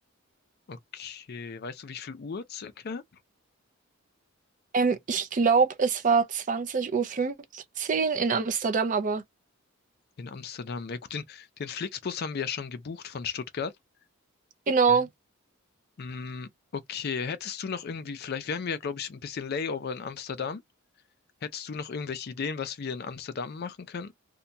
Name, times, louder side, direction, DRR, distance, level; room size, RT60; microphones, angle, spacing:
voice 1, 0.7-3.0 10.2-13.7 14.9-15.0 16.0-20.6 21.4-24.1, left 5 dB, 50° left, 0.4 m, -35 dB
voice 2, 4.7-9.2 14.7-15.1, right 5 dB, 35° right, 0.4 m, -25 dB
2.8 x 2.2 x 2.6 m
head